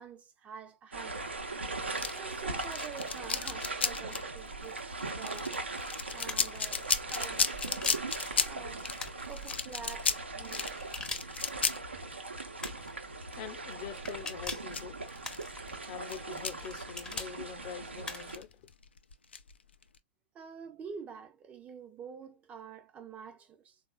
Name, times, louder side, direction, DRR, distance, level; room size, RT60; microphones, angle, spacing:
voice 1, 0.0-1.4 2.1-5.6 6.1-8.9 9.3-10.9 13.3-13.4 20.3-23.8, right 6 dB, 25° right, 0.5 m, -48 dB
sound 1, 0.9-18.4, right 3 dB, 90° right, 0.8 m, -40 dB
sound 2, 1.9-17.3 17.6-17.7 18.1-20.0, left 5 dB, 80° left, 0.4 m, -35 dB
sound 3, 6.3-6.6 7.5-8.1 9.0-9.6 10.7-11.5 12.6-13.0 14.0-14.7 15.2-15.8 16.6-17.3 18.0-18.4, left 4 dB, 15° left, 0.7 m, -41 dB
voice 2, 13.4-15.0 15.9-18.7, left 8 dB, 45° left, 0.8 m, -44 dB
3.6 x 2.4 x 2.3 m
figure-of-eight pair, 105°, 6 cm